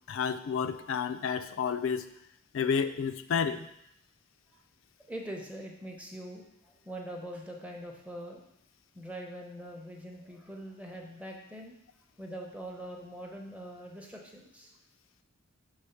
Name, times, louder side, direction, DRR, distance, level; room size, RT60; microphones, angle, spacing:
voice 1, 0.1-2.0 2.5-3.7, left 6 dB, 70° left, 11 dB, 0.4 m, -30 dB
voice 2, 5.1-8.4 8.9-11.7 12.2-14.7, right 1 dB, 5° right, 1 dB, 0.7 m, -43 dB
4.8 x 3.6 x 5.6 m, 0.77 s
head